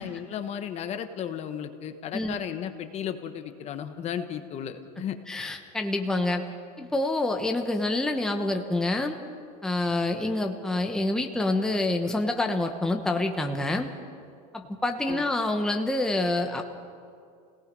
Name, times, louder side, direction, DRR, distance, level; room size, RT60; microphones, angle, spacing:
voice 1, 0.0-5.2 15.1-15.2, left 9 dB, 35° left, 8 dB, 1.2 m, -34 dB
voice 2, 5.3-6.4 6.8-9.2 9.6-13.9 14.5-16.6, left 2 dB, 5° left, 3 dB, 1.1 m, -27 dB
29.5 x 18.0 x 5.4 m, 2.4 s
supercardioid pair, 145°, 20 cm